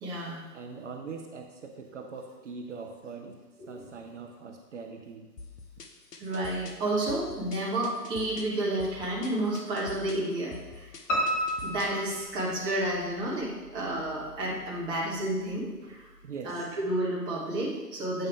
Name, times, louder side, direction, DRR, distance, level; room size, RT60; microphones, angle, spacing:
voice 1, 0.0-0.4 3.6-3.8 6.2-10.9 11.6-16.1 16.4-18.3, right 1 dB, 10° right, -5 dB, 0.8 m, -31 dB
voice 2, 0.5-3.4 3.7-5.3 16.2-16.7, right 4 dB, 45° right, 4 dB, 0.6 m, -42 dB
sound 1, 5.4-12.1, left 3 dB, 70° left, 0.9 m, -46 dB
Piano, 11.1-13.0 13.4-14.3 14.6-14.7 15.2-15.3 15.5-15.6, equal, 45° left, 1.6 m, -31 dB
7.7 x 5.1 x 3.4 m, 1.2 s
figure-of-eight pair, 125°, 49 cm